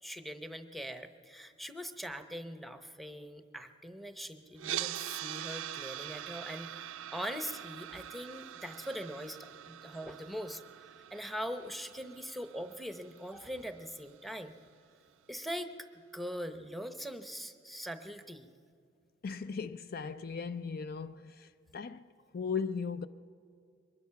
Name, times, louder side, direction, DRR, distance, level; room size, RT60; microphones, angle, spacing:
voice 1, 0.0-10.6 11.1-14.6 15.3-18.6, equal, ahead, 0.8 m, -42 dB
sound 1, 4.6-14.7, right 12 dB, 90° right, 0.4 m, -43 dB
voice 2, 19.2-23.1, left 5 dB, 50° left, 0.4 m, -38 dB
22.5 x 20.0 x 5.8 m
head